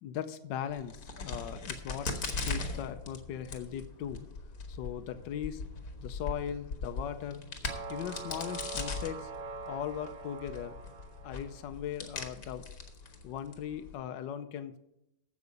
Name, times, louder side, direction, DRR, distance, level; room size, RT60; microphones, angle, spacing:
voice 1, 0.0-4.3 4.7-5.6 6.0-7.4 7.9-9.3 9.7-10.7 11.2-12.6 13.2-14.8, left 9 dB, 80° left, 9 dB, 1.4 m, -39 dB
Crack, 0.7-14.0, left 4 dB, 55° left, 1.8 m, -40 dB
sound 1, 7.7-11.7, right 4 dB, 85° right, 1.7 m, -43 dB
15.0 x 6.0 x 5.2 m, 0.84 s
omnidirectional pair, 1.9 m